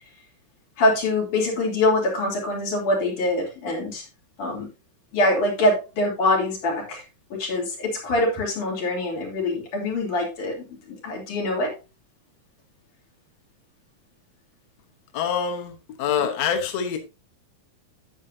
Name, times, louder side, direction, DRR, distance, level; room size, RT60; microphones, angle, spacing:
voice 1, 0.8-4.0 4.4-4.7 5.1-7.0 7.3-11.7, left 2 dB, 85° left, -2 dB, 4.9 m, -24 dB
voice 2, 15.1-15.7 16.0-17.0, left 7 dB, 65° left, 4 dB, 2.1 m, -25 dB
10.0 x 8.5 x 2.8 m, 0.30 s
omnidirectional pair, 3.4 m